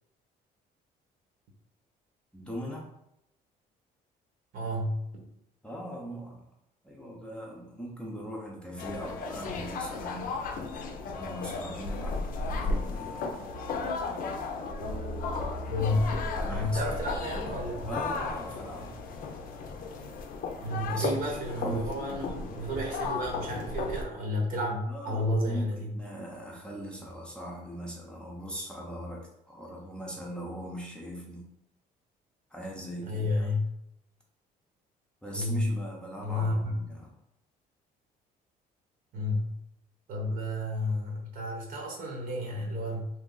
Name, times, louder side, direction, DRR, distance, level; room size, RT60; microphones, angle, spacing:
voice 1, 2.3-2.9 5.6-6.5 6.8-10.4 11.2-13.3 16.3-16.9 17.9-19.0 20.9-22.6 24.9-31.5 32.5-33.5 35.2-37.2, right 1 dB, 5° left, -3 dB, 0.6 m, -40 dB
voice 2, 4.5-5.3 9.5-9.6 15.7-16.1 16.5-17.9 20.6-25.9 33.1-33.7 35.3-35.7 36.2-36.7 39.1-39.5 40.1-43.1, left 1 dB, 55° right, -1 dB, 1.0 m, -31 dB
sound 1, 8.8-24.0, left 4 dB, 55° left, 0.5 m, -35 dB
sound 2, 13.5-19.2, equal, 90° right, 1.4 m, -43 dB
2.7 x 2.4 x 3.8 m, 0.80 s
cardioid pair, 110°, 17 cm